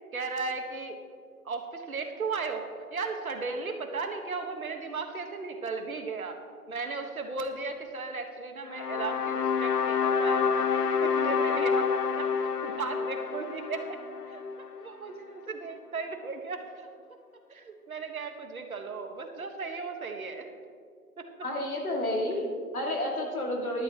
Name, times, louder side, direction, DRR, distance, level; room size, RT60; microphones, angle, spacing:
voice 1, 0.1-1.0 1.4-6.4 6.7-10.6 11.0-16.9 17.5-20.5 21.2-21.3, right 4 dB, 65° right, 5 dB, 1.5 m, -36 dB
sound 1, 8.7-14.9, left 6 dB, 85° left, 0.8 m, -28 dB
voice 2, 21.4-23.8, left 1 dB, 65° left, 0 dB, 2.4 m, -31 dB
14.0 x 12.0 x 3.0 m, 2.2 s
hypercardioid pair, 175°, 46 cm